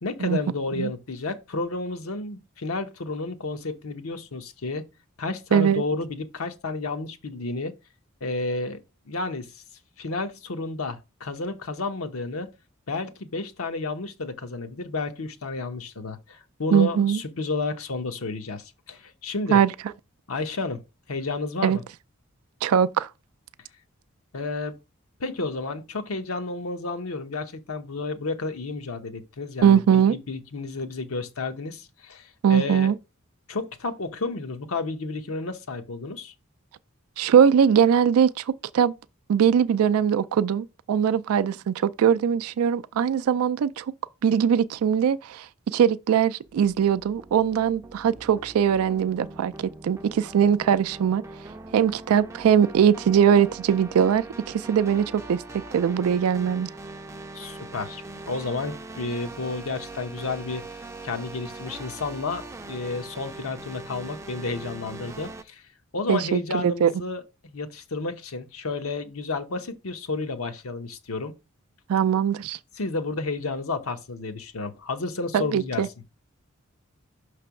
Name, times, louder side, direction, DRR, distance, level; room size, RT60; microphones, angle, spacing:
voice 1, 0.0-4.9 5.2-7.8 8.2-8.8 9.1-9.5 10.0-12.5 12.9-19.6 20.3-20.8 21.1-21.8 24.3-24.7 25.2-32.9 33.5-36.3 57.3-58.0 58.3-65.6 65.9-71.4 72.8-75.8, left 3 dB, 85° left, 0.9 m, -31 dB
voice 2, 5.5-5.8 16.7-17.2 19.5-19.7 21.6-21.8 22.6-23.1 29.6-30.2 32.4-33.0 37.2-38.9 39.3-43.9 44.2-51.2 51.7-56.7 66.1-66.9 71.9-72.6 75.3-75.9, right 8 dB, 90° right, 0.3 m, -21 dB
sound 1, 46.5-65.4, right 2 dB, 15° right, 0.4 m, -41 dB
6.0 x 3.3 x 5.7 m
head